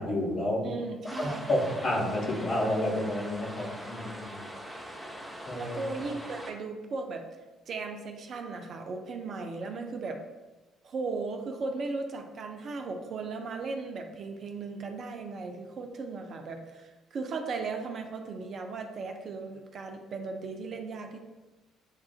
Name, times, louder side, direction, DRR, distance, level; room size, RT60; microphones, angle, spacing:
voice 1, 0.0-0.7 1.2-4.4 5.5-5.8, left 1 dB, 55° left, -4 dB, 1.2 m, -30 dB
voice 2, 0.6-1.7 5.5-7.2 7.7-10.2 10.8-21.2, right 4 dB, 50° right, 4 dB, 0.5 m, -37 dB
sound 1, 1.1-6.5, equal, ahead, 0.8 m, -42 dB
7.3 x 2.4 x 2.3 m, 1.2 s
figure-of-eight pair, 50°, 0 cm